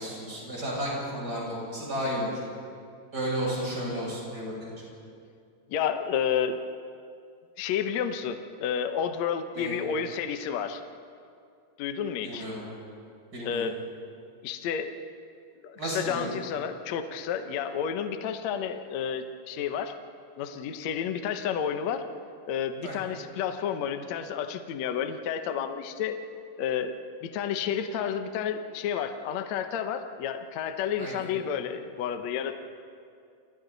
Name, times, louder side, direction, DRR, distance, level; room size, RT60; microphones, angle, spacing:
voice 1, 0.0-2.3 3.1-4.9 9.6-9.8 12.2-12.6 13.3-13.7 15.8-16.3 22.8-23.1 31.0-31.3, equal, 20° right, -5 dB, 7.6 m, -33 dB
voice 2, 5.7-6.6 7.6-10.8 11.8-12.5 13.4-13.7 14.4-14.9 15.6-20.0 20.4-22.0 22.5-26.2 26.6-26.9 27.2-32.5, left 8 dB, 70° left, 7 dB, 1.6 m, -31 dB
29.5 x 29.0 x 4.1 m, 2.4 s
omnidirectional pair, 4.6 m